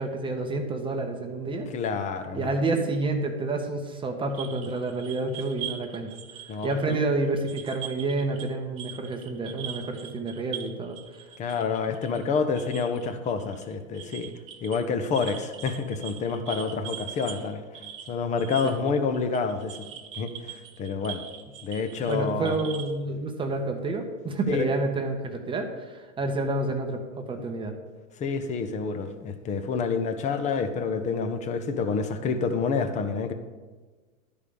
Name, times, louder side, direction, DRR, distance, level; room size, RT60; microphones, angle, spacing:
voice 1, 0.0-1.7 2.3-6.1 6.6-11.0 22.1-27.7, right 2 dB, 10° right, 3 dB, 0.8 m, -29 dB
voice 2, 1.7-2.6 6.5-7.0 11.4-14.3 14.6-17.6 18.1-19.8 20.1-21.2 21.6-22.6 24.5-24.7 28.2-33.3, left 5 dB, 15° left, 8 dB, 0.7 m, -28 dB
sound 1, 4.3-8.5 8.8-23.0, right 11 dB, 30° right, 1.3 m, -42 dB
11.5 x 5.1 x 6.9 m, 1.3 s
hypercardioid pair, 120°, 41 cm